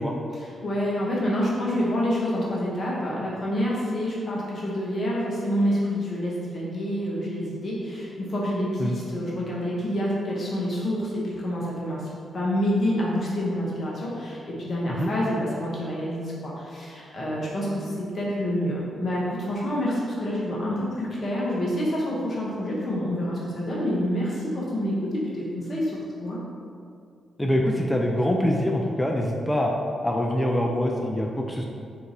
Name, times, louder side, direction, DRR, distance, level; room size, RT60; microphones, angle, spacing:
voice 1, 0.3-26.4, equal, 50° left, -5 dB, 0.8 m, -27 dB
voice 2, 27.4-29.7 30.0-31.6, equal, 10° left, 0 dB, 0.4 m, -24 dB
2.9 x 2.5 x 3.8 m, 2.3 s
supercardioid pair, 45°, 0 cm